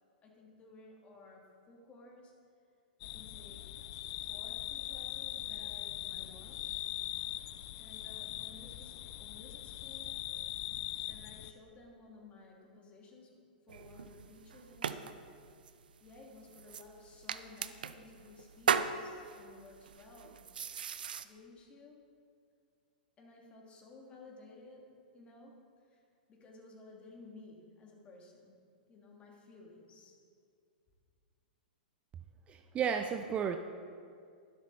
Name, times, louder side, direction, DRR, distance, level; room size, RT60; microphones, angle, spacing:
voice 1, 0.2-2.3 3.0-3.9 4.3-6.7 7.8-10.2 11.0-15.3 16.0-20.5 21.2-22.0 23.2-28.5 28.9-30.2, left 3 dB, 25° left, -1 dB, 2.9 m, -56 dB
sound 1, 3.0-11.5, left 14 dB, 45° left, 0.6 m, -41 dB
sound 2, 13.7-21.2, right 7 dB, 70° right, 0.6 m, -38 dB
voice 2, 32.5-33.6, right 7 dB, 25° right, 7 dB, 0.5 m, -33 dB
12.5 x 11.5 x 4.2 m, 2.3 s
figure-of-eight pair, 105°, 5 cm